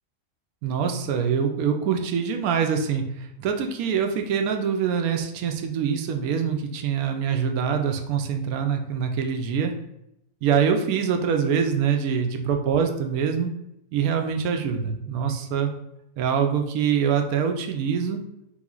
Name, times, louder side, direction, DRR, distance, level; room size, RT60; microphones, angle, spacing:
voice 1, 0.6-9.7 10.4-13.5 13.9-15.7 16.2-18.2, right 7 dB, 75° right, 5 dB, 1.0 m, -24 dB
3.4 x 3.1 x 3.7 m, 0.83 s
omnidirectional pair, 1.6 m